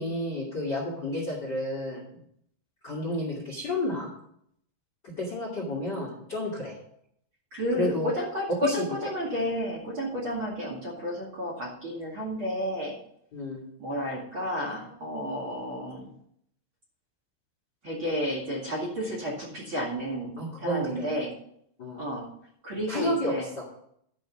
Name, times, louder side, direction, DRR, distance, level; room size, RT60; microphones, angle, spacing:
voice 1, 0.0-2.0 2.8-4.1 5.0-6.8 7.7-8.1 8.6-9.0 13.3-13.6 20.4-21.1 21.8-22.0 22.9-23.6, left 1 dB, 35° left, -2 dB, 1.8 m, -31 dB
voice 2, 7.5-13.0 13.8-16.1 17.8-21.3 21.9-22.3 22.6-23.4, equal, 35° right, -2 dB, 2.4 m, -31 dB
12.0 x 5.4 x 6.0 m, 0.68 s
omnidirectional pair, 4.7 m